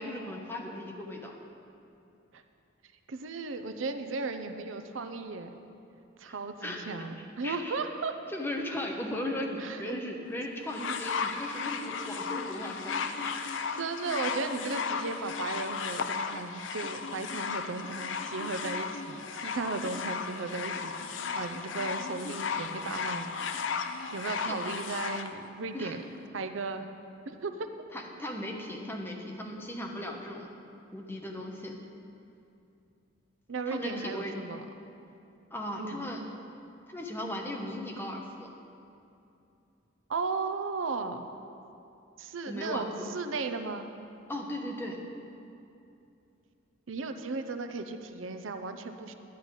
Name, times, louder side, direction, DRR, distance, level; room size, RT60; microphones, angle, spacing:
voice 1, 0.0-1.3 6.6-7.0 7.4-7.8 8.3-13.4 24.5-24.6 25.7-26.0 27.9-30.5 30.9-31.8 33.7-34.3 35.5-36.2 36.9-38.5 42.5-43.1 44.3-45.0, left 1 dB, 10° left, 0 dB, 1.0 m, -37 dB
voice 2, 3.1-5.5 6.2-8.2 9.6-10.0 10.9-11.0 13.8-23.3 24.1-26.0 26.3-26.9 27.3-27.7 33.5-34.6 35.8-36.0 40.1-41.3 42.2-43.9 46.9-49.1, right 4 dB, 85° right, 8 dB, 0.6 m, -35 dB
sound 1, 10.7-25.3 26.1-26.2, left 5 dB, 70° left, 0.5 m, -35 dB
11.0 x 5.7 x 8.8 m, 2.7 s
head